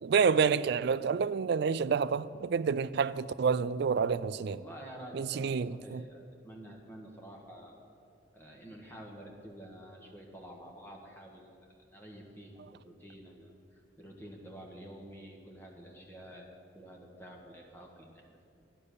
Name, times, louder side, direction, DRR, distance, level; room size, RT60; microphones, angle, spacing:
voice 1, 0.0-4.6 5.1-6.0, right 6 dB, 60° right, 0.3 m, -28 dB
voice 2, 4.4-6.2 6.4-7.7 8.3-11.6 11.9-18.5, right 1 dB, 10° left, 1.5 m, -49 dB
13.5 x 9.7 x 6.8 m
head